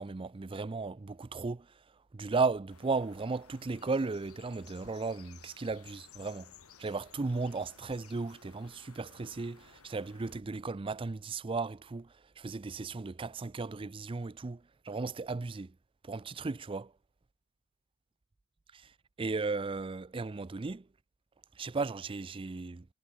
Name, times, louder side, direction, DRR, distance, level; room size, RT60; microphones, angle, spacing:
voice 1, 0.0-1.7 2.1-6.5 6.8-12.1 12.4-14.6 14.9-15.7 16.0-16.9 19.2-20.8 21.6-22.9, right 4 dB, 25° right, 0.4 m, -35 dB
sound 1, 2.7-10.4, left 6 dB, 75° left, 3.0 m, -57 dB
head